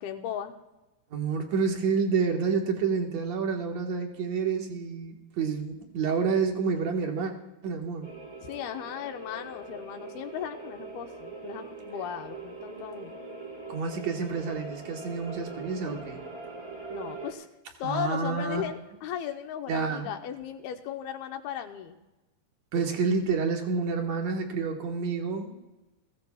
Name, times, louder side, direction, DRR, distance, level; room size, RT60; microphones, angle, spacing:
voice 1, 0.0-0.5 8.4-13.2 16.9-17.5 17.8-22.0, left 9 dB, 75° left, 6 dB, 2.7 m, -36 dB
voice 2, 1.1-7.3 7.6-8.1 13.7-16.2 17.8-18.6 19.7-20.1 22.7-25.5, right 5 dB, 55° right, 2 dB, 2.2 m, -29 dB
sound 1, 8.0-17.3, right 3 dB, 40° right, 1.0 m, -42 dB
21.0 x 16.0 x 2.4 m, 1.0 s
omnidirectional pair, 4.6 m